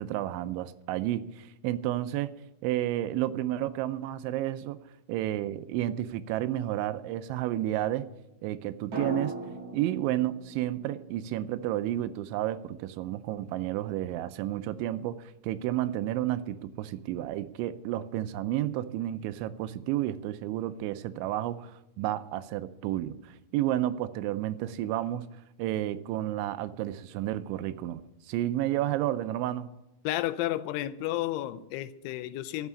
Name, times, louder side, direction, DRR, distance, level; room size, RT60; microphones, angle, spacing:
voice 1, 0.0-2.3 2.6-4.8 5.1-8.1 8.4-9.4 9.7-25.3 25.6-29.7, right 13 dB, 85° right, 12 dB, 2.9 m, -31 dB
sound 1, 8.9-12.9 13.1-13.2, right 2 dB, 35° right, 6.7 m, -41 dB
voice 2, 30.0-32.7, left 14 dB, 85° left, 12 dB, 3.1 m, -32 dB
13.0 x 7.0 x 9.7 m, 0.91 s
omnidirectional pair, 5.4 m